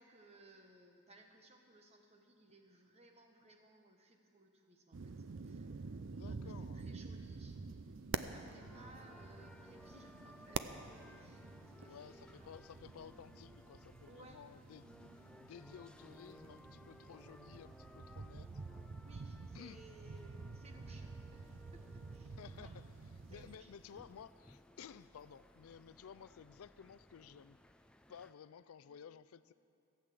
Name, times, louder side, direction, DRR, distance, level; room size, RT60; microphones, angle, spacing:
voice 1, 0.0-5.7 6.3-12.5 14.1-14.4 19.0-21.4 21.7-22.9 23.3-23.7 28.9-29.0, right 1 dB, 30° right, 4 dB, 1.1 m, -62 dB
sound 1, 4.9-23.6, right 4 dB, 60° right, 0.5 m, -48 dB
voice 2, 6.1-6.8 11.8-18.6 19.5-19.8 22.4-22.8 23.3-27.6 28.1-29.5, left 7 dB, 80° left, 15 dB, 0.4 m, -55 dB
sound 2, 8.6-28.3, left 1 dB, 5° left, 0.3 m, -60 dB
15.5 x 8.3 x 7.6 m, 2.7 s
head